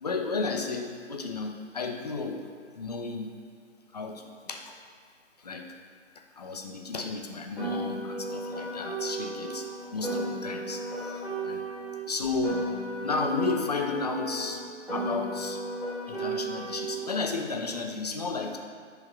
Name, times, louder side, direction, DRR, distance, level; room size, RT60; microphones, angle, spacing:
voice 1, 0.0-2.4 2.8-3.3 3.9-4.8 5.4-5.7 6.4-9.6 9.9-11.7 12.1-12.6 13.0-14.6 14.9-15.6 16.1-18.6, left 3 dB, 35° left, 3 dB, 0.4 m, -33 dB
Piano, 7.6-12.0 12.4-17.0, right 1 dB, ahead, 1.0 m, -34 dB
4.9 x 3.5 x 5.6 m, 2.2 s
figure-of-eight pair, 135°, 38 cm